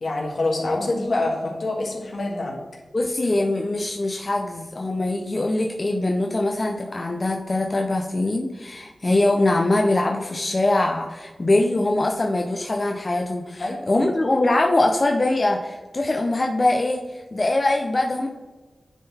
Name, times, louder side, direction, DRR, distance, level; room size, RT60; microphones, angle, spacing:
voice 1, 0.0-2.6 13.6-14.1, left 2 dB, 70° left, -1 dB, 1.6 m, -26 dB
voice 2, 2.9-18.3, left 2 dB, 35° left, 2 dB, 0.5 m, -22 dB
9.9 x 3.9 x 4.1 m, 1.3 s
wide cardioid pair, 105°, 0 cm